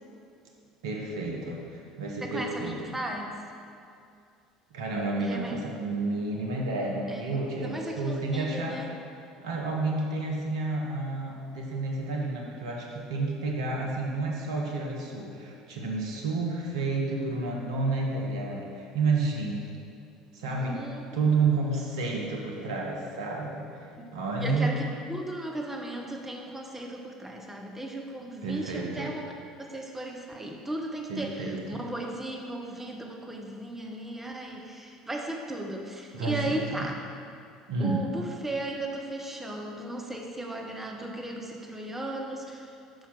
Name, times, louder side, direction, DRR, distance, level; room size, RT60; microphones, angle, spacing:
voice 1, 0.8-3.0 4.7-8.8 9.4-19.7 20.3-20.9 21.1-24.7 28.4-29.1 31.1-31.8 36.1-36.9 37.7-38.0, right 3 dB, 70° right, -1 dB, 1.0 m, -30 dB
voice 2, 2.2-3.3 5.2-5.5 7.1-8.9 20.4-21.1 24.0-29.3 29.6-36.9 37.8-42.8, right 1 dB, 10° right, 1 dB, 0.7 m, -36 dB
5.6 x 4.6 x 6.0 m, 2.5 s
figure-of-eight pair, 65°, 3 cm